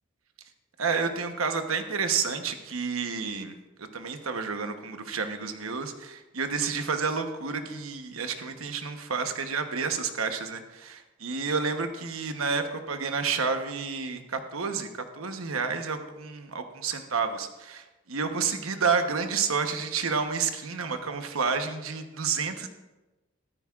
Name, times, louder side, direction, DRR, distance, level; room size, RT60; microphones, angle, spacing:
voice 1, 0.8-22.7, right 5 dB, 80° right, 7 dB, 1.0 m, -30 dB
14.0 x 13.5 x 2.4 m, 1.1 s
head